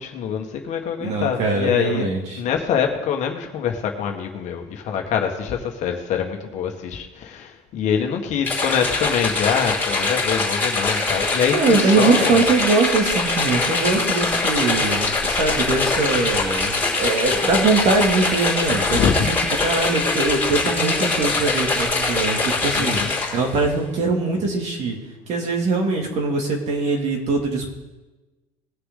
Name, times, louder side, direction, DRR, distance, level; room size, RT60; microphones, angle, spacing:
voice 1, 0.0-2.0 2.3-12.4 18.9-19.3 22.7-23.1, left 7 dB, 50° left, 3 dB, 1.6 m, -24 dB
voice 2, 1.0-2.4 11.5-19.3 19.6-25.0 25.3-27.7, right 3 dB, 45° right, 1 dB, 2.6 m, -22 dB
sound 1, 8.5-23.6, left 3 dB, 15° left, 3.5 m, -23 dB
20.0 x 6.8 x 3.9 m, 1.1 s
cardioid pair, 140°, 16 cm